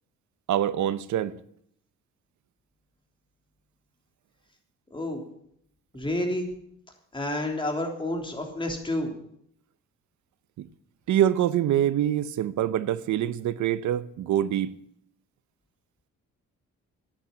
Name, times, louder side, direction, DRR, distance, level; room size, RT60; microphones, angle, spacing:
voice 1, 0.5-1.3 10.6-10.7 11.1-14.7, right 11 dB, 70° right, 0.8 m, -25 dB
voice 2, 4.9-5.2 5.9-6.5 7.1-9.1, left 1 dB, 15° left, 3.4 m, -29 dB
10.5 x 9.1 x 8.7 m
cardioid pair, 90°, 30 cm